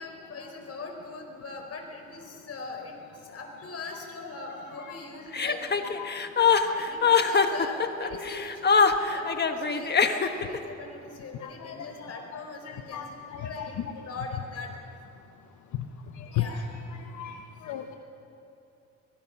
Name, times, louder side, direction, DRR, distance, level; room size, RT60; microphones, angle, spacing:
voice 1, 0.0-5.9 6.7-13.0 13.3-14.8 16.3-16.6, left 3 dB, 55° left, 3 dB, 4.5 m, -41 dB
Chuckle chortle, 5.3-10.6, left 5 dB, 35° left, 1.4 m, -23 dB
voice 2, 11.4-12.4 12.6-13.7 14.0-14.3 16.1-16.6 17.1-17.3 17.6-17.9, left 11 dB, 75° left, 5 dB, 1.2 m, -36 dB
23.5 x 20.5 x 6.1 m, 2.8 s
cardioid pair, 90°, 30 cm